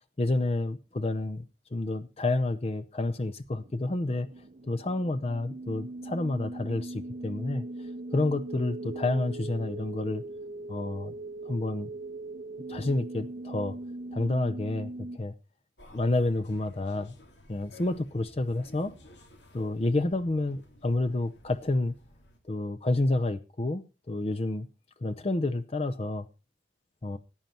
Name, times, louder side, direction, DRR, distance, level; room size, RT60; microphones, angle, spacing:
voice 1, 0.2-4.3 4.6-7.6 8.1-10.2 10.7-11.1 11.4-11.9 12.7-13.8 14.1-15.3 15.9-17.2 17.5-18.9 19.5-22.0 22.5-24.7 25.0-26.3 27.0-27.2, left 2 dB, 35° left, 0.5 m, -29 dB
sound 1, 3.4-15.2, right 2 dB, 45° right, 0.6 m, -40 dB
sound 2, 15.8-22.4, left 1 dB, 85° left, 2.6 m, -55 dB
14.5 x 9.2 x 4.3 m
head